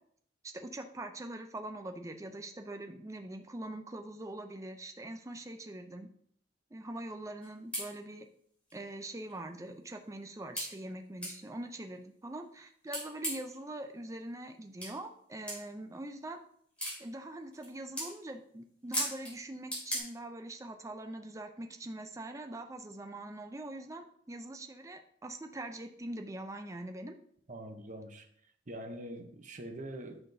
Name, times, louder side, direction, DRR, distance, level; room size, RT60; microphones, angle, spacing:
voice 1, 0.4-6.1 6.7-8.3 8.7-16.4 17.0-27.1, right 1 dB, 15° right, 0.5 m, -43 dB
sound 1, 7.4-7.5 7.7-7.9 8.7-8.8 9.3-9.4 10.6-10.7 11.2-11.4 12.9-13.5 14.8-14.9 15.5-15.6 16.8-17.0 17.5-17.7 18.0-18.1 18.9-19.3 19.7-20.0, equal, 5° left, 2.7 m, -35 dB
voice 2, 27.5-28.3 28.7-30.2, right 1 dB, 40° right, 0.8 m, -44 dB
9.1 x 5.8 x 2.7 m
head